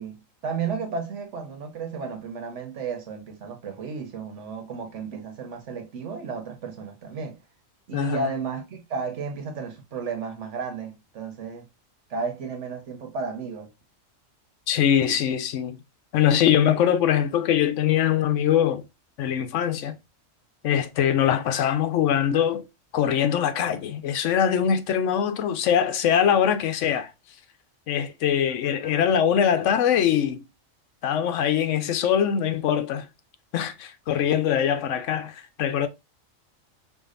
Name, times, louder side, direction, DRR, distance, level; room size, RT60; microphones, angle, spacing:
voice 1, 0.0-7.4 7.9-11.7 12.1-13.7, right 5 dB, 65° right, 1.2 m, -33 dB
voice 2, 7.9-8.3 14.7-15.8 16.1-18.8 19.2-20.0 20.6-22.6 22.9-27.1 27.9-30.4 31.0-33.1 33.5-35.9, left 9 dB, 70° left, 0.9 m, -22 dB
4.9 x 2.4 x 2.4 m
omnidirectional pair, 1.4 m